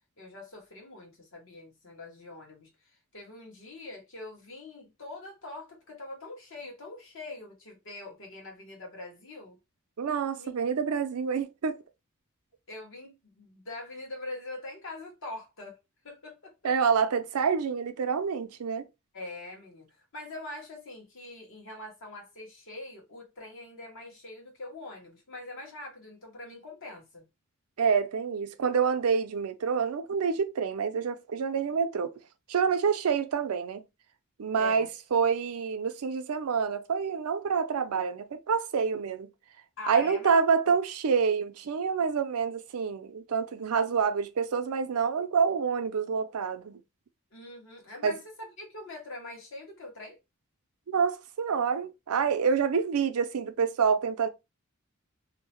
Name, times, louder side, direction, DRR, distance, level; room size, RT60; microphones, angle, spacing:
voice 1, 0.2-9.6 10.3-10.6 12.7-15.8 16.0-16.5 19.1-27.2 34.6-34.9 39.8-40.3 40.6-40.7 47.3-50.2, left 2 dB, 65° left, 1.2 m, -43 dB
voice 2, 10.0-11.8 16.6-18.9 27.8-32.1 32.5-33.8 34.4-39.3 39.9-46.8 48.0-48.2 50.9-54.3, right 6 dB, 90° right, 0.5 m, -27 dB
2.7 x 2.1 x 2.9 m
head